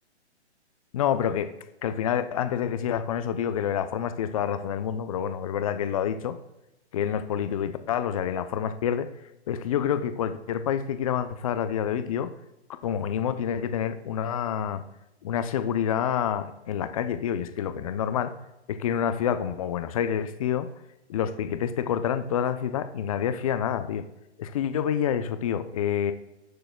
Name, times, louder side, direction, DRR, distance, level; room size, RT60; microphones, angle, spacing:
voice 1, 0.9-1.5 1.8-6.4 6.9-9.1 9.5-12.3 12.8-14.8 15.2-18.3 18.7-20.7 21.1-24.0 24.4-26.1, left 9 dB, 30° left, 10 dB, 0.6 m, -28 dB
18.5 x 6.8 x 2.3 m, 0.91 s
hypercardioid pair, 145°, 35 cm